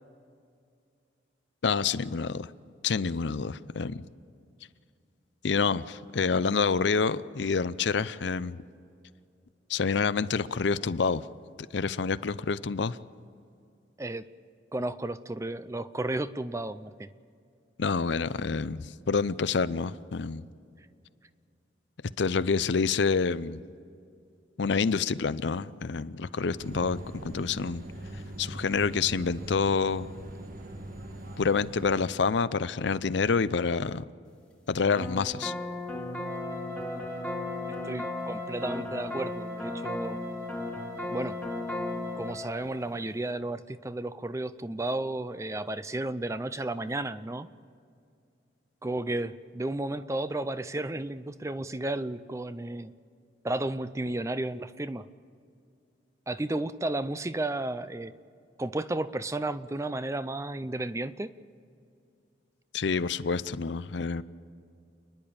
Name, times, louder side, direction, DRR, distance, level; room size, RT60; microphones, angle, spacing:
voice 1, 1.6-2.5 2.8-4.0 5.4-8.6 9.7-11.2 11.7-13.0 17.8-20.4 22.2-23.6 24.6-27.8 28.4-30.1 31.4-34.0 34.7-35.5 62.7-64.2, left 5 dB, 70° left, 15 dB, 0.6 m, -27 dB
voice 2, 14.7-17.1 37.8-40.2 41.1-41.4 42.2-47.5 48.8-52.9 53.4-55.1 56.3-58.1 58.6-61.3, right 2 dB, 15° right, 13 dB, 0.5 m, -33 dB
sound 1, 26.6-32.0, right 1 dB, 45° right, 1.5 m, -41 dB
sound 2, 35.0-42.3, left 1 dB, 5° left, 1.6 m, -36 dB
Wind instrument woodwind instrument, 36.2-42.6, left 3 dB, 65° right, 4.5 m, -41 dB
29.0 x 10.5 x 8.7 m, 2.4 s
head